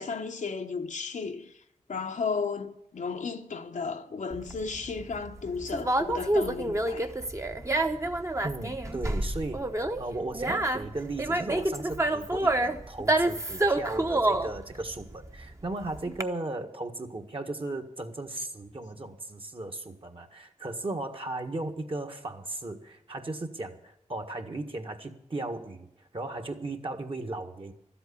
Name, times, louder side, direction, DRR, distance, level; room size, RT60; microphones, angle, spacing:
voice 1, 0.0-1.5 1.9-7.1, left 5 dB, 80° left, 1.0 m, -34 dB
Conversation, 4.3-16.2, right 2 dB, 25° right, 1.0 m, -28 dB
voice 2, 8.4-9.6 10.0-25.9 26.1-27.7, right 2 dB, 45° right, 1.6 m, -36 dB
12.5 x 8.0 x 9.8 m
cardioid pair, 50°, 13 cm